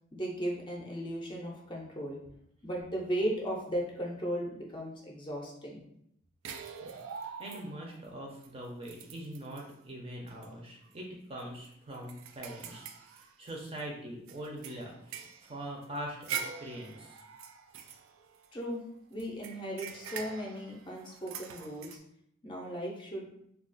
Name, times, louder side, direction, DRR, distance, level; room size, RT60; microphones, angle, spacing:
voice 1, 0.1-2.2 2.6-5.8 18.5-18.8 19.1-21.9 22.4-23.3, equal, 25° left, -2 dB, 0.5 m, -36 dB
sound 1, 6.4-7.9 8.4-8.5 8.8-9.7 10.3-10.5 10.8-10.9 11.4-13.8 14.3-18.7 19.2-22.0, right 7 dB, 90° right, 0.3 m, -44 dB
voice 2, 7.4-17.2, right 1 dB, 30° right, -1 dB, 0.5 m, -43 dB
2.3 x 2.3 x 3.8 m, 0.72 s
head